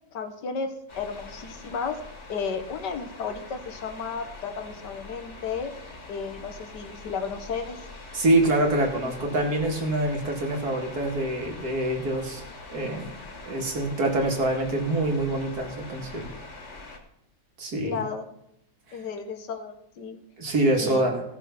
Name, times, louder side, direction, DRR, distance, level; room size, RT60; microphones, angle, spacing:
voice 1, 0.1-2.0 2.3-5.7 6.1-7.8 17.8-18.2 18.9-20.2 20.7-21.0, left 5 dB, 80° left, 7 dB, 1.8 m, -33 dB
sound 1, 0.9-17.0, left 3 dB, 40° left, 2.1 m, -43 dB
voice 2, 8.1-12.4 12.7-13.1 13.5-16.3 17.6-18.0 20.4-21.2, right 1 dB, 60° right, 2 dB, 2.4 m, -25 dB
15.5 x 6.3 x 5.8 m, 0.79 s
omnidirectional pair, 1.8 m